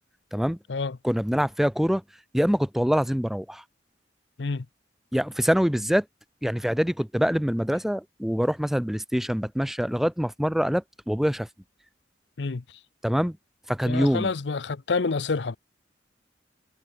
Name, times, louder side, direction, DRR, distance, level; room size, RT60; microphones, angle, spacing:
voice 1, 1.0-2.0 2.3-3.6 5.1-6.0 6.4-11.5 13.0-13.4 13.7-14.3, equal, ahead, 0.5 m, -24 dB
voice 2, 13.9-15.6, left 4 dB, 70° left, 0.7 m, -28 dB
head